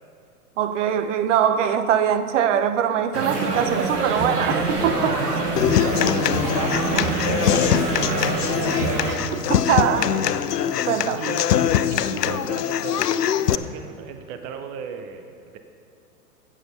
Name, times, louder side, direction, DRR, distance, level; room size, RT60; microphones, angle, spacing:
voice 1, 0.6-5.2 9.3-10.1 10.9-11.2, right 9 dB, 50° right, 0.7 m, -22 dB
sound 1, 3.1-9.2, right 2 dB, 85° right, 1.7 m, -25 dB
voice 2, 5.2-9.3 9.7-10.4 11.2-15.6, right 6 dB, 20° right, 0.5 m, -36 dB
Human voice / Acoustic guitar, 5.6-13.5, left 10 dB, 85° left, 0.5 m, -23 dB
12.5 x 8.3 x 5.4 m
hypercardioid pair, 105°, 46 cm